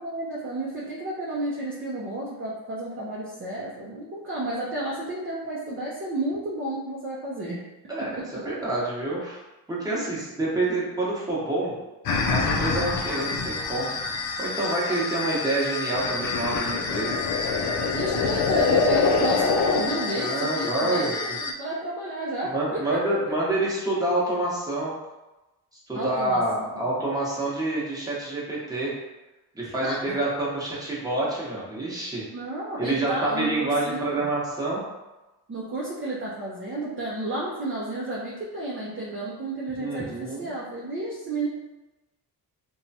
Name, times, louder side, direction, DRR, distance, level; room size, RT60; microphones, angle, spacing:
voice 1, 0.0-7.6 9.9-10.1 14.9-15.1 17.9-22.5 22.8-23.0 25.9-26.8 29.8-30.2 32.3-34.3 35.5-41.5, right 1 dB, 30° right, -6 dB, 0.6 m, -32 dB
voice 2, 7.9-9.4 9.7-11.7 12.3-13.9 14.4-17.2 20.1-21.1 22.4-24.9 25.9-28.9 29.5-32.2 32.8-34.8 39.8-40.5, right 2 dB, 10° right, -6 dB, 0.9 m, -27 dB
sound 1, 12.1-21.5, left 4 dB, 60° left, 0.5 m, -26 dB
2.8 x 2.3 x 2.7 m, 1.1 s
cardioid pair, 95°, 41 cm